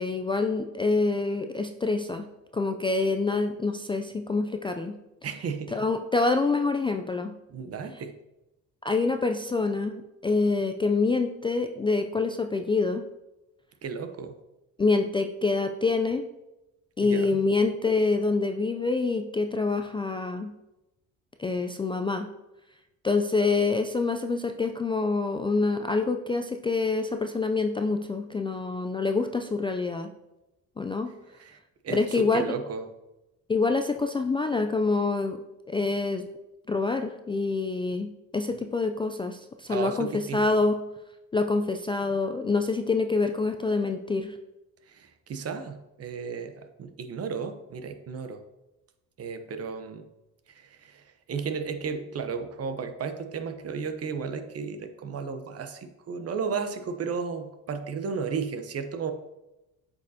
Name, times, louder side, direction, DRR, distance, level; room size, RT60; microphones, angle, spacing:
voice 1, 0.0-2.3 2.5-5.0 5.7-7.3 8.8-13.0 14.8-16.3 17.0-20.5 21.4-22.3 23.0-30.1 30.8-31.1 31.9-32.4 33.5-35.4 35.7-36.2 36.7-40.8 41.3-44.4, left 3 dB, 15° left, 5 dB, 0.3 m, -26 dB
voice 2, 5.2-5.8 7.5-8.1 13.8-14.3 17.0-17.4 31.3-32.9 39.7-40.4 44.8-48.4 49.2-50.1 50.5-59.1, right 5 dB, 45° right, 8 dB, 0.8 m, -34 dB
8.0 x 5.3 x 2.7 m, 0.96 s
cardioid pair, 90°, 35 cm